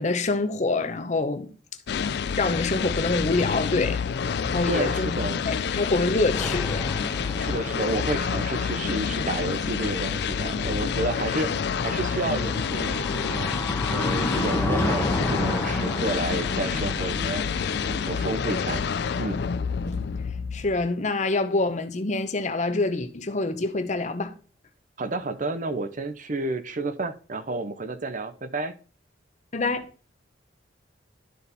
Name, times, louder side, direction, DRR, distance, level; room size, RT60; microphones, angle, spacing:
voice 1, 0.0-1.5 2.4-4.0 4.4-5.1 5.4-6.9 19.8-20.0 20.5-24.3 29.5-29.9, left 3 dB, 40° left, 0.8 m, -26 dB
sound 1, 1.9-20.9, left 6 dB, 60° left, 0.4 m, -28 dB
voice 2, 4.7-5.4 7.4-13.5 13.9-17.4 17.8-18.8 19.2-19.4 25.0-28.7, right 2 dB, 45° right, 0.7 m, -30 dB
sound 2, 6.4-18.8, left 1 dB, 15° left, 1.1 m, -33 dB
12.0 x 4.2 x 4.1 m
head